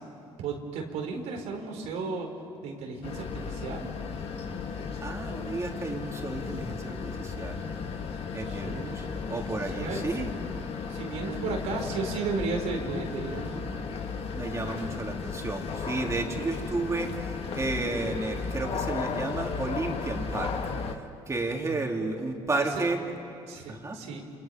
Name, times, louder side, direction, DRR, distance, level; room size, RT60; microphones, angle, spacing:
voice 1, 0.4-2.3 2.6-3.9 8.5-9.2 9.7-10.0 10.9-13.7 14.6-14.7 21.7-21.8 22.6-22.8 23.5-24.2, right 4 dB, 80° right, 2 dB, 4.2 m, -34 dB
sound 1, 3.0-20.9, left 5 dB, 60° left, 2.0 m, -35 dB
voice 2, 5.0-7.7 8.3-10.3 11.0-11.6 14.3-20.7 21.3-23.0 23.7-24.0, right 2 dB, 25° right, 1 dB, 3.5 m, -32 dB
28.5 x 28.0 x 5.5 m, 2.7 s
supercardioid pair, 80°, 11 cm